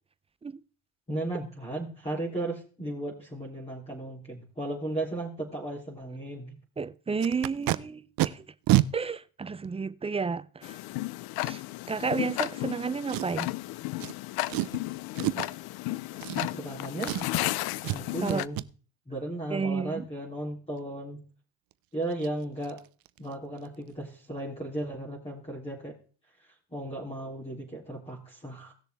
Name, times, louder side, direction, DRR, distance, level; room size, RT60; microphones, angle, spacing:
voice 1, 1.1-6.5 16.6-17.1 17.9-18.7 19.1-21.2 21.9-22.8 23.2-25.9 26.7-28.7, right 1 dB, 15° left, 3.3 m, -35 dB
voice 2, 6.8-8.5 8.9-10.8 11.4-11.6 11.9-13.5 18.2-18.4 19.5-20.1, right 5 dB, 15° right, 0.5 m, -31 dB
Packing tape duct tape, 7.2-7.8 8.2-8.3 8.7-8.9 9.6-9.7 13.1-13.5 14.0-14.1 14.5-14.8 15.2-15.5 16.2-16.7 17.0-17.5 17.8-18.0 18.3-18.7 21.7-21.8 22.1-22.3 22.6-22.8 23.1-23.3 23.6-23.7, right 17 dB, 60° right, 0.7 m, -28 dB
Tick-tock, 10.6-18.5, left 18 dB, 70° left, 0.6 m, -33 dB
17.5 x 6.7 x 3.5 m
cardioid pair, 105°, 39 cm